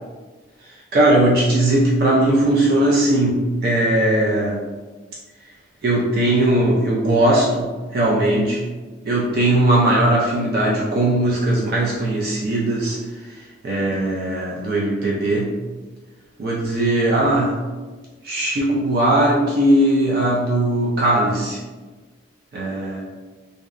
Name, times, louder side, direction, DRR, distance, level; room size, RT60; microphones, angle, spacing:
voice 1, 0.9-4.6 5.8-8.6 9.1-15.6 16.4-17.6 18.2-21.6 22.5-23.0, right 1 dB, 50° right, -4 dB, 0.3 m, -19 dB
2.6 x 2.0 x 2.4 m, 1.3 s
head